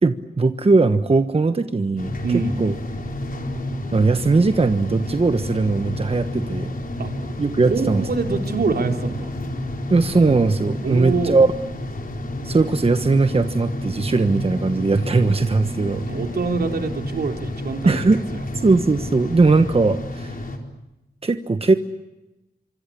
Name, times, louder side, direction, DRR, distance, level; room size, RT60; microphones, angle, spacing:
voice 1, 0.0-2.7 3.9-6.7 7.4-8.0 9.9-11.5 12.4-16.0 17.8-18.2 18.6-20.4 21.2-21.7, right 3 dB, 35° right, 9 dB, 1.3 m, -19 dB
sound 1, 2.0-20.6, left 1 dB, 60° left, 4.4 m, -30 dB
voice 2, 2.2-2.6 7.0-7.1 7.6-9.3 10.8-11.3 16.1-18.0 18.3-18.4, right 4 dB, 75° right, 4 dB, 3.5 m, -25 dB
25.5 x 25.5 x 8.5 m, 1.0 s
wide cardioid pair, 85°, 16 cm